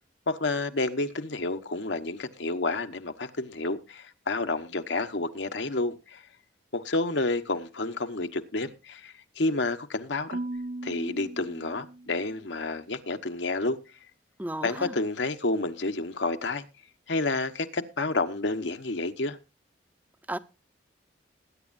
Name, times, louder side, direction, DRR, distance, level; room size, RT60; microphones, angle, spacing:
voice 1, 0.3-6.2 6.7-10.4 10.8-13.8 14.6-16.6 17.1-19.4, left 2 dB, 80° left, 1.1 m, -30 dB
Marimba xylophone / Wood, 10.3-12.5, right 2 dB, 50° right, 0.5 m, -38 dB
voice 2, 14.4-14.9 20.3-20.4, right 1 dB, 10° right, 0.5 m, -33 dB
20.5 x 9.7 x 2.6 m
head